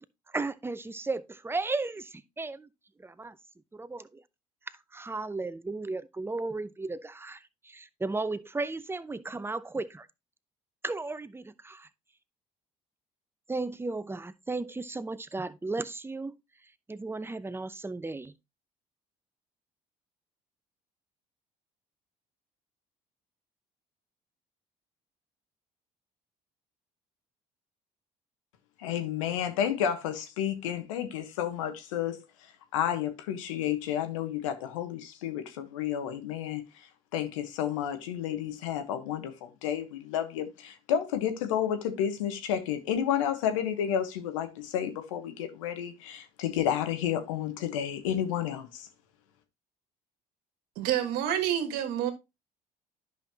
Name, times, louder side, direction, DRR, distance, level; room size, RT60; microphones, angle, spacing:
voice 1, 0.3-2.7 3.0-3.4 3.7-4.2 4.7-10.1 10.8-11.9 13.5-16.3 16.9-18.3, right 3 dB, 15° right, 0.7 m, -35 dB
voice 2, 28.8-32.2 32.7-36.6 37.1-48.9, left 9 dB, 90° left, 1.1 m, -31 dB
voice 3, 50.8-52.1, right 10 dB, 75° right, 1.5 m, -28 dB
10.5 x 5.6 x 2.8 m
hypercardioid pair, 65°, 16 cm